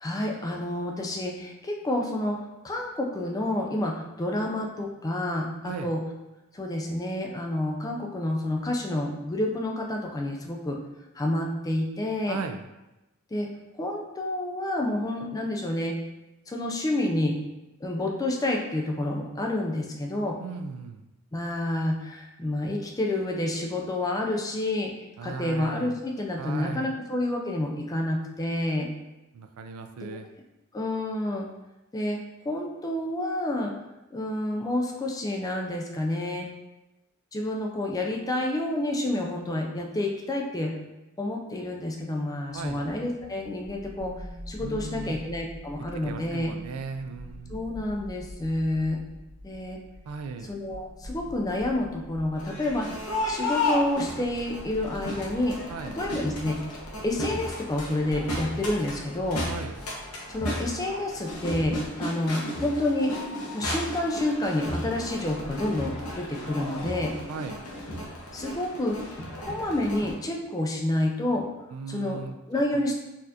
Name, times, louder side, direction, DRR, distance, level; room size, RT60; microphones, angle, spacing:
voice 1, 0.0-2.4 2.6-6.0 6.5-10.8 11.2-12.4 13.3-13.5 13.8-15.9 16.5-17.4 17.8-20.4 21.3-24.9 25.2-28.9 30.7-31.5 31.9-32.2 32.5-33.7 34.1-36.5 37.3-40.7 41.2-44.1 44.5-46.5 47.5-49.0 49.4-49.8 50.5-52.9 53.3-55.6 55.9-56.6 57.0-59.4 60.3-63.1 63.5-67.1 68.3-69.0 69.4-71.5 71.9-72.2 72.5-72.9, left 1 dB, 15° left, 0 dB, 0.3 m, -29 dB
voice 2, 12.3-12.6 20.4-21.1 25.2-26.0 26.4-26.9 29.3-30.3 42.5-42.9 44.6-45.2 45.8-47.6 50.1-50.5 55.7-56.0 59.5-59.8 67.3-67.7 71.7-72.8, right 5 dB, 85° right, 8 dB, 0.3 m, -37 dB
sound 1, 42.5-61.9, equal, 55° right, 1.4 m, -45 dB
Crowd, 52.4-70.1, left 1 dB, 85° left, 0.9 m, -34 dB
4.1 x 2.4 x 2.7 m, 1.0 s
head